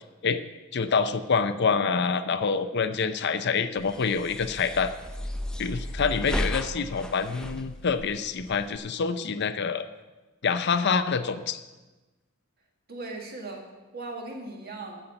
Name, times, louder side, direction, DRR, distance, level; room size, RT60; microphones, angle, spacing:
voice 1, 0.7-4.9 5.6-9.8 10.4-11.6, left 5 dB, 50° left, 10 dB, 0.5 m, -26 dB
sound 1, 3.8-8.8, equal, 5° left, 0.5 m, -34 dB
voice 2, 12.9-15.0, right 2 dB, 45° right, 1 dB, 1.8 m, -38 dB
13.0 x 5.6 x 7.8 m, 1.2 s
head